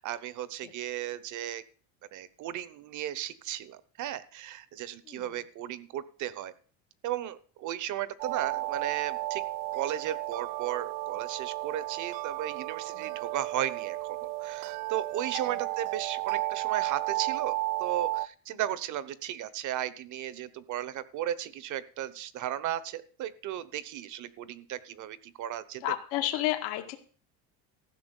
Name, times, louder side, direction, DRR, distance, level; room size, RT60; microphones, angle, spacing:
voice 1, 0.0-1.6 2.1-6.5 7.0-9.4 9.7-25.8, right 12 dB, 45° right, 16 dB, 1.0 m, -35 dB
sound 1, 8.2-18.3, right 19 dB, 70° right, 0.6 m, -33 dB
voice 2, 25.8-27.0, left 15 dB, 80° left, 5 dB, 2.0 m, -31 dB
14.5 x 6.2 x 8.2 m, 0.43 s
cardioid pair, 145°, 41 cm